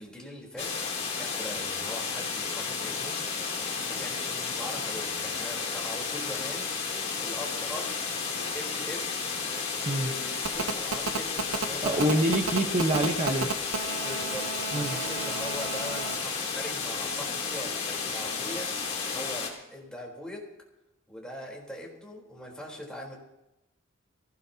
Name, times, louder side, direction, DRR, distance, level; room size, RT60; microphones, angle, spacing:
voice 1, 0.0-3.2 3.5-6.7 7.2-9.1 10.0-12.4 14.0-20.4 21.1-23.2, left 1 dB, 5° left, -2 dB, 4.0 m, -41 dB
sound 1, 0.6-19.5, left 5 dB, 35° left, 3.2 m, -32 dB
Telephone, 10.5-16.2, right 5 dB, 90° right, 0.8 m, -33 dB
voice 2, 11.8-13.5 14.7-15.0, right 1 dB, 35° right, 2 dB, 1.2 m, -26 dB
22.0 x 16.5 x 2.9 m, 0.93 s
head